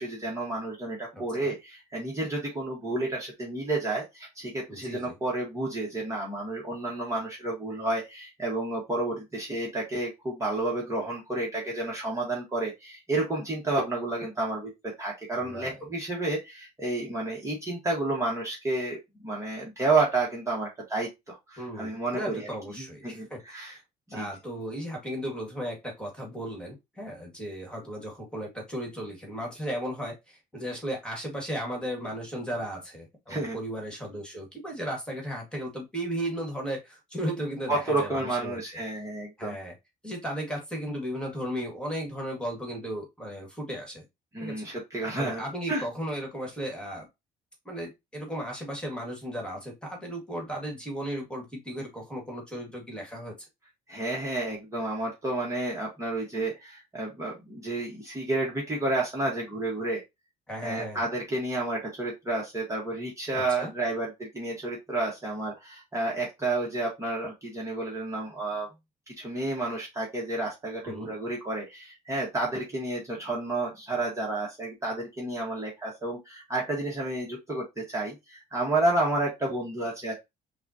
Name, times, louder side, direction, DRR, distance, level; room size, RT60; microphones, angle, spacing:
voice 1, 0.0-14.7 15.0-22.5 22.8-23.8 24.1-24.3 33.3-33.6 37.7-39.5 44.3-45.4 45.7-45.8 53.9-60.0 60.6-68.7 69.2-80.1, right 2 dB, 20° right, -4 dB, 1.4 m, -30 dB
voice 2, 1.1-1.5 4.7-5.1 15.4-15.8 21.6-23.8 24.1-38.6 39.4-39.7 40.0-44.0 44.4-44.7 45.2-47.1 47.7-53.3 60.5-61.0 63.3-63.7 70.8-71.1, equal, 5° left, 1 dB, 1.8 m, -35 dB
5.6 x 2.4 x 2.8 m, 0.22 s
cardioid pair, 110°, 17 cm